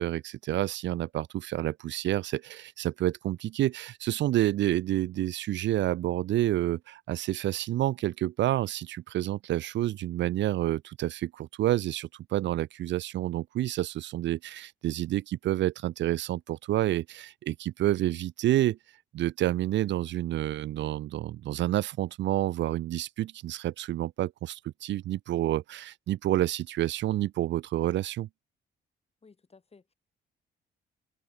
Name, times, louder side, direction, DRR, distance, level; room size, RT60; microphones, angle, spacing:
voice 1, 0.0-18.8 19.1-28.3, right 14 dB, 70° right, 0.5 m, -29 dB
voice 2, 29.2-29.9, left 4 dB, 30° left, 7.2 m, -57 dB
cardioid pair, 90°, 20 cm